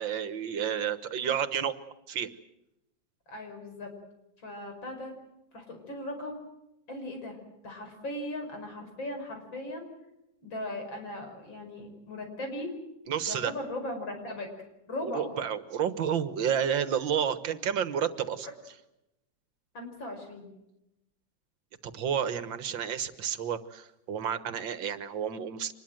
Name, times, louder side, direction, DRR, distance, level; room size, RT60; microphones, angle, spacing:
voice 1, 0.0-1.8 2.1-2.3 13.1-13.5 15.0-18.5 21.8-25.7, right 8 dB, 75° right, 12 dB, 2.0 m, -30 dB
voice 2, 3.3-3.9 4.4-5.1 5.5-6.4 6.9-7.4 7.6-9.9 10.4-12.8 13.3-14.5 14.9-15.3 19.7-20.5, left 1 dB, 80° left, 4 dB, 6.2 m, -38 dB
25.5 x 21.0 x 7.7 m, 0.89 s
omnidirectional pair, 2.1 m